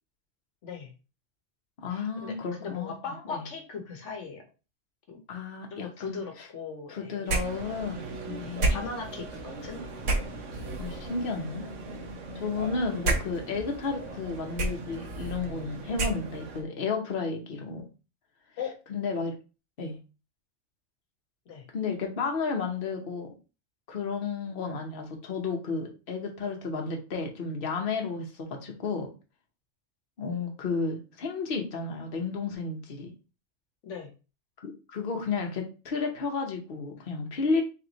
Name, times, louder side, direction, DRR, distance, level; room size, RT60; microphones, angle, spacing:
voice 1, 0.6-0.9 1.9-4.4 5.1-5.2 5.7-7.2 8.4-9.8 18.6-18.8 21.5-21.6 33.8-34.1, left 5 dB, 75° left, 3 dB, 1.1 m, -39 dB
voice 2, 1.8-2.9 3.3-3.4 5.3-6.5 6.9-8.8 10.8-11.7 12.3-17.9 18.9-19.3 19.8-20.0 21.7-23.3 23.9-29.1 30.2-33.1 34.6-37.6, left 4 dB, 50° left, 2 dB, 1.1 m, -32 dB
sound 1, 7.3-16.6, right 2 dB, 85° right, 1.3 m, -33 dB
3.4 x 3.1 x 3.9 m, 0.32 s
omnidirectional pair, 1.2 m